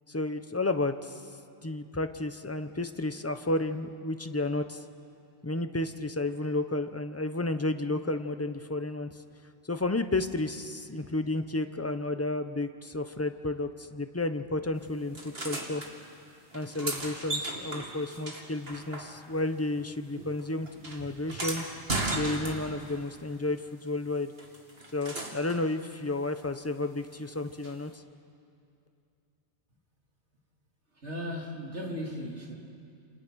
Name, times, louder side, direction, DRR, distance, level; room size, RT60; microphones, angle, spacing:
voice 1, 0.1-1.2 1.6-4.8 5.4-9.1 9.6-15.8 16.5-21.6 22.1-24.3 24.9-28.0, left 2 dB, 15° left, 8 dB, 0.9 m, -32 dB
sound 1, 15.1-15.9 16.5-19.5 19.7-22.9 24.4-25.7 27.6-27.7, right 2 dB, 60° right, 2.7 m, -36 dB
voice 2, 31.0-32.5, equal, 80° right, -1 dB, 3.7 m, -36 dB
29.0 x 28.0 x 6.4 m, 2.5 s
omnidirectional pair, 1.2 m